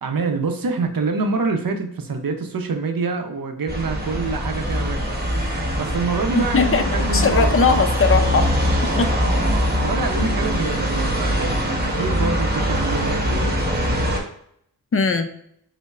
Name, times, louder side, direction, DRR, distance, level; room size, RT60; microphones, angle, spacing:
voice 1, 0.0-5.2 5.8-7.6 9.8-14.1, right 4 dB, 60° right, 5 dB, 0.6 m, -26 dB
sound 1, 3.7-14.2, equal, 25° right, 0.9 m, -22 dB
voice 2, 6.3-8.5 9.0-9.1 14.9-15.3, left 4 dB, 35° left, 8 dB, 0.4 m, -19 dB
5.2 x 2.0 x 2.4 m, 0.67 s
wide cardioid pair, 65°, 39 cm